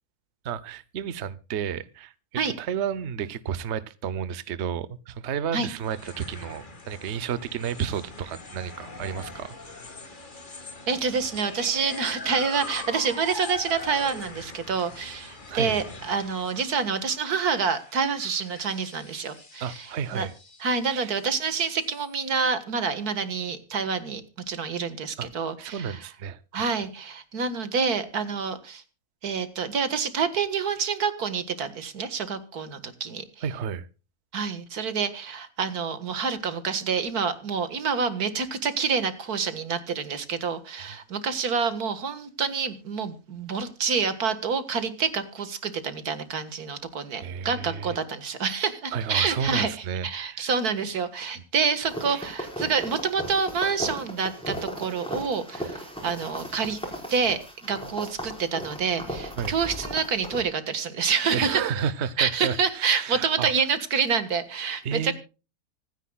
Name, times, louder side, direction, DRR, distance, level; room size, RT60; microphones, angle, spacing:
voice 1, 0.4-2.1 2.6-9.9 15.5-15.8 19.6-20.3 20.9-21.1 25.2-25.3 25.6-26.4 30.8-30.9 33.4-33.9 47.2-48.0 48.9-50.5 52.1-52.3 59.4-59.6 61.3-63.5 64.8-65.1, right 7 dB, 55° right, 1.0 m, -32 dB
sound 1, 5.8-22.2, left 3 dB, 35° left, 1.9 m, -42 dB
voice 2, 10.9-20.3 20.6-24.2 24.5-26.0 26.5-28.8 29.2-33.2 34.3-56.8 57.1-61.6 62.2-65.1, right 5 dB, 90° right, 2.1 m, -27 dB
sound 2, 51.8-60.4, equal, 5° left, 4.9 m, -36 dB
25.5 x 9.9 x 2.3 m
omnidirectional pair, 1.6 m